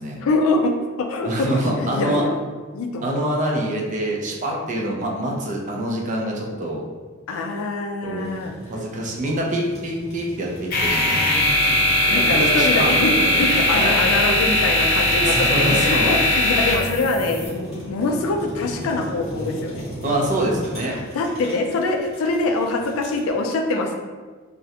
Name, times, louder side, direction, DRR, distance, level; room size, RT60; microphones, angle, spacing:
voice 1, 0.2-2.4 2.7-3.2 4.5-4.7 7.3-8.5 11.2-11.7 12.1-19.8 21.1-24.0, left 2 dB, 80° left, 4 dB, 0.3 m, -24 dB
voice 2, 1.2-2.2 3.0-6.8 8.0-8.3 8.7-11.3 12.3-12.9 13.2-13.4 13.7-14.0 15.2-16.1 20.0-21.0, right 1 dB, 40° right, -2 dB, 0.4 m, -25 dB
Fire, 8.2-23.3, equal, ahead, 1.3 m, -36 dB
sound 1, 10.7-17.5, left 1 dB, 45° left, 0.7 m, -19 dB
2.4 x 2.1 x 2.7 m, 1.4 s
head